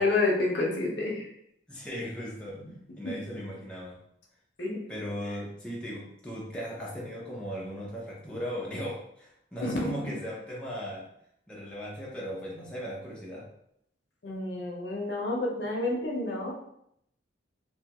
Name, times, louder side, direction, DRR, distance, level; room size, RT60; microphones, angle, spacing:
voice 1, 0.0-1.3 2.6-2.7 3.0-3.1 4.6-4.8 9.6-9.9 14.2-16.5, left 2 dB, 65° left, -2 dB, 0.7 m, -29 dB
voice 2, 1.7-2.6 3.0-4.0 4.9-11.1 11.5-13.5, equal, 5° left, -6 dB, 0.5 m, -37 dB
2.6 x 2.3 x 2.8 m, 0.73 s
head